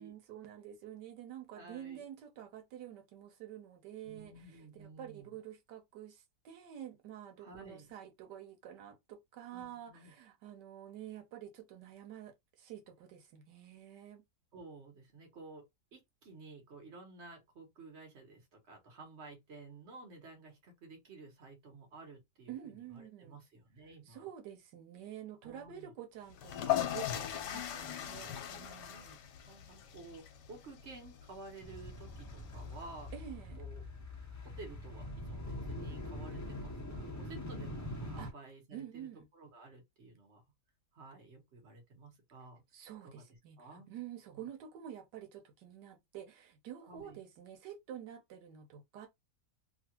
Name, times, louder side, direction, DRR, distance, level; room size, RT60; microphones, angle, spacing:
voice 1, 0.0-14.2 22.5-23.4 24.1-29.2 33.1-33.6 37.2-37.3 38.2-38.3 38.7-39.3 42.7-49.1, right 10 dB, 85° right, 1.4 m, -49 dB
voice 2, 1.5-2.1 4.0-5.4 7.4-7.9 9.5-10.1 14.5-24.3 25.4-25.9 26.9-27.7 28.9-29.1 29.4-33.1 33.6-33.8 34.4-40.4 40.9-42.6 43.0-43.2 43.6-43.9 44.3-44.5 46.9-47.2, right 3 dB, 45° right, 1.4 m, -53 dB
sound 1, 26.3-33.1, left 12 dB, 85° left, 1.2 m, -39 dB
sound 2, 31.6-38.3, left 1 dB, 25° left, 0.4 m, -43 dB
3.1 x 2.4 x 2.9 m
omnidirectional pair, 1.8 m